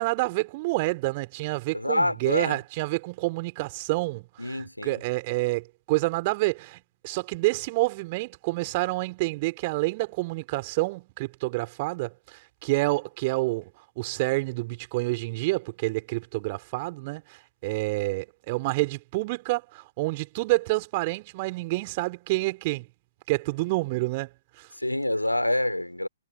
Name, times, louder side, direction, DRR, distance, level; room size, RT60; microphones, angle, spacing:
voice 1, 0.0-6.8 7.0-13.7 14.0-22.9 23.3-24.3 24.6-24.7, right 23 dB, 35° right, 3.8 m, -28 dB
voice 2, 1.7-2.6 4.4-5.0 24.8-26.1, left 1 dB, 90° left, 3.5 m, -27 dB
figure-of-eight pair, 120°, 0 cm